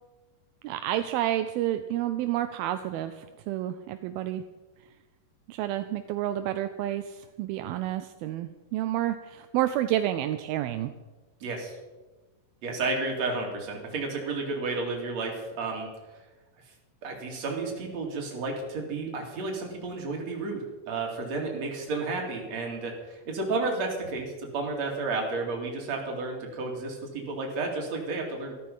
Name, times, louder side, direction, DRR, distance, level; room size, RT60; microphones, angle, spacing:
voice 1, 0.6-4.4 5.5-10.9, right 13 dB, 80° right, 9 dB, 2.5 m, -30 dB
voice 2, 11.4-11.7 12.6-15.9 17.0-28.5, right 3 dB, 45° right, 1 dB, 3.6 m, -32 dB
14.5 x 14.0 x 5.6 m, 1.2 s
omnidirectional pair, 4.3 m